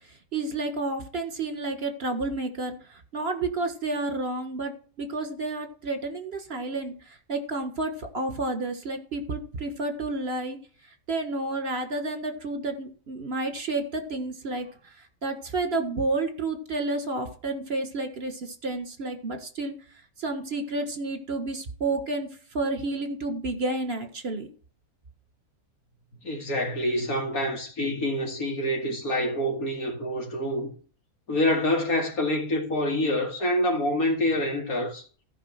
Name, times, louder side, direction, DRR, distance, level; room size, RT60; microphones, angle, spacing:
voice 1, 0.3-10.6 11.1-19.7 20.2-22.3 22.5-24.5, right 2 dB, 45° right, 1.9 m, -30 dB
voice 2, 26.2-30.7 31.3-35.0, left 1 dB, 75° left, 2.8 m, -26 dB
15.0 x 5.5 x 5.8 m
omnidirectional pair, 1.5 m